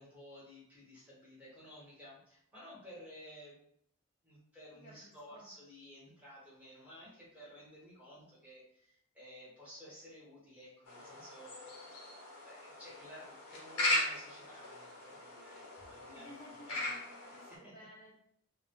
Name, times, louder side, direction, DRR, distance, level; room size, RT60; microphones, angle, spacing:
voice 1, 0.0-3.6 4.2-11.9 12.4-16.4 16.7-16.9 17.3-17.7, equal, 5° right, -8 dB, 1.0 m, -54 dB
voice 2, 4.8-5.5 16.1-18.2, left 1 dB, 30° left, -7 dB, 0.5 m, -55 dB
sound 1, 10.9-17.6, left 1 dB, 90° left, 0.7 m, -39 dB
2.2 x 2.1 x 3.0 m, 0.71 s
head